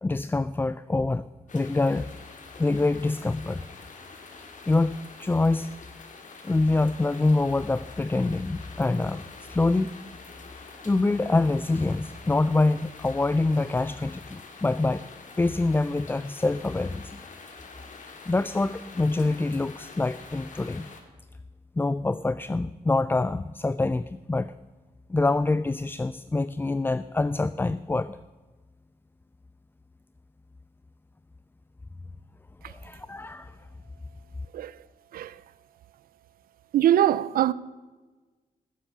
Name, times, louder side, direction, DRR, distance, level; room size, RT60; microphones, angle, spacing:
voice 1, 0.0-1.3 1.5-2.1 2.6-3.7 4.7-5.7 6.4-9.2 9.5-10.0 10.8-15.1 15.4-17.2 18.3-20.9 21.8-24.5 25.1-28.2 32.7-33.5, left 2 dB, 15° left, 0.3 m, -25 dB
sound 1, 1.5-21.0, left 4 dB, 60° left, 2.0 m, -46 dB
voice 2, 36.7-37.5, right 11 dB, 90° right, 0.5 m, -22 dB
16.0 x 7.3 x 6.9 m
cardioid pair, 80°, 15 cm